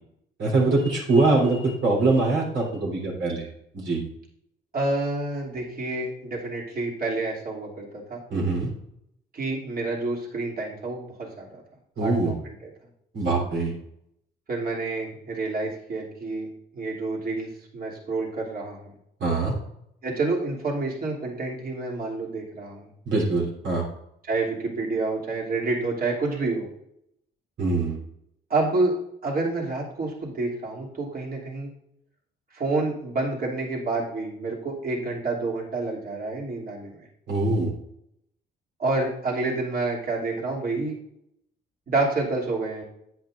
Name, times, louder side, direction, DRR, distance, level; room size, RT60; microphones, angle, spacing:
voice 1, 0.4-3.5 3.7-4.0 8.3-8.7 12.0-12.4 13.1-13.7 19.2-19.5 23.1-23.8 27.6-28.0 37.3-37.7, right 3 dB, 65° right, -4 dB, 3.5 m, -23 dB
voice 2, 4.7-8.2 9.3-11.6 12.0-12.7 14.5-18.9 20.0-22.9 24.3-26.7 28.5-29.0 29.2-31.7 32.5-37.1 38.8-41.0 41.9-42.8, right 3 dB, 45° right, -3 dB, 2.9 m, -28 dB
10.5 x 9.0 x 2.6 m, 0.77 s
cardioid pair, 90°, 20 cm